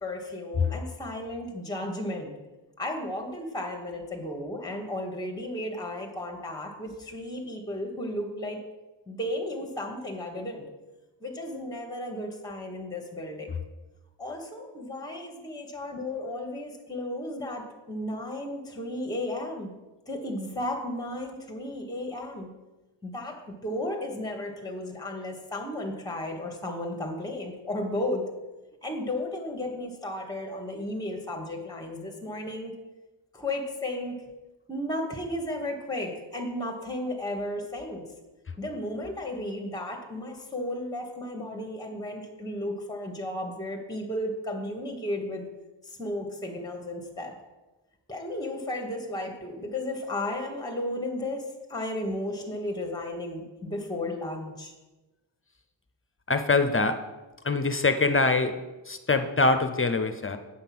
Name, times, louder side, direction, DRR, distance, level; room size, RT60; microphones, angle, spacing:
voice 1, 0.0-2.4 2.8-8.6 9.1-10.7 11.2-13.6 14.2-19.7 20.1-22.5 23.0-28.2 28.8-32.7 33.3-34.2 34.7-38.0 38.6-45.4 45.8-47.4 48.1-54.7, left 1 dB, 10° left, 2 dB, 1.3 m, -34 dB
voice 2, 56.3-57.0 57.4-58.6 58.9-60.4, left 3 dB, 30° left, 9 dB, 0.6 m, -24 dB
8.4 x 5.5 x 5.9 m, 1.1 s
wide cardioid pair, 80°, 45 cm